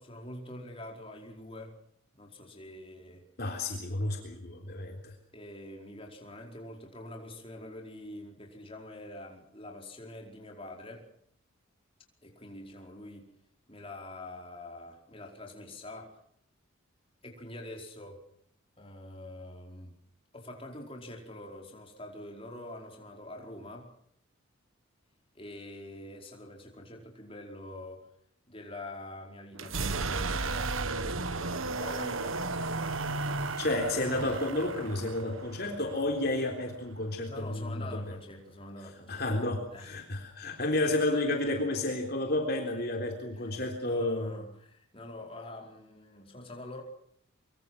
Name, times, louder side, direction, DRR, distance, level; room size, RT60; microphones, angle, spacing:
voice 1, 0.0-1.8 2.1-3.2 5.3-11.1 12.2-13.3 13.7-16.2 17.2-18.2 18.8-19.9 20.3-23.9 25.3-28.1 28.5-30.6 31.4-32.4 37.3-39.2 39.7-40.0 43.4-43.5 43.8-46.8, left 1 dB, 25° left, 1 dB, 4.8 m, -45 dB
voice 2, 3.4-5.2 33.6-38.0 39.1-44.4, left 2 dB, 45° left, 3 dB, 3.7 m, -31 dB
sound 1, 29.5-37.3, right 3 dB, 75° right, 1.5 m, -34 dB
24.5 x 24.0 x 6.2 m, 0.70 s
head